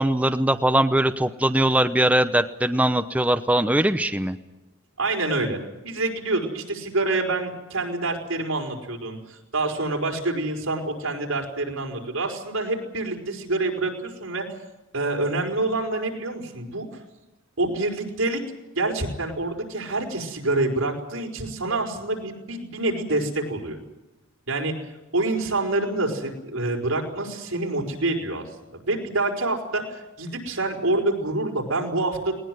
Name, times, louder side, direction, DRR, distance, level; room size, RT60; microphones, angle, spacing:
voice 1, 0.0-4.4, right 1 dB, 5° right, 9 dB, 0.8 m, -21 dB
voice 2, 5.0-5.6 5.8-14.5 14.9-16.9 17.6-18.4 18.8-23.8 24.5-24.7 25.1-28.4 28.7-32.3, right 2 dB, 85° right, 1 dB, 5.3 m, -26 dB
20.0 x 19.5 x 9.5 m, 1.0 s
head